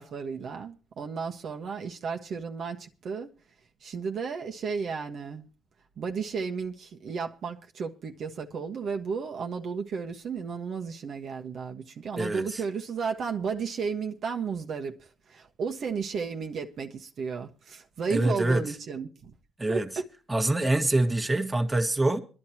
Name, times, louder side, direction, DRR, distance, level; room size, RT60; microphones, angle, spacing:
voice 1, 0.0-3.3 3.8-5.5 6.0-19.3 19.7-20.0, right 5 dB, 60° right, 1.4 m, -33 dB
voice 2, 12.2-12.6 18.1-18.6 19.6-19.9 20.3-22.2, right 2 dB, 15° right, 1.7 m, -25 dB
24.0 x 11.0 x 2.9 m
cardioid pair, 90°, 0 cm